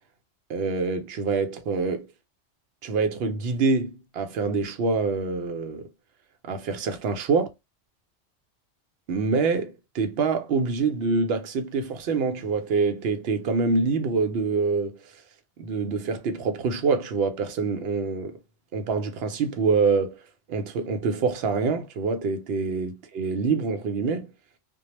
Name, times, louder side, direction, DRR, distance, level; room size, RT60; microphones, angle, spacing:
voice 1, 0.5-2.1 2.8-5.9 6.4-7.5 9.1-15.2 15.6-18.4 18.7-24.3, right 4 dB, 65° right, 0.7 m, -26 dB
2.2 x 2.0 x 2.9 m
omnidirectional pair, 1.2 m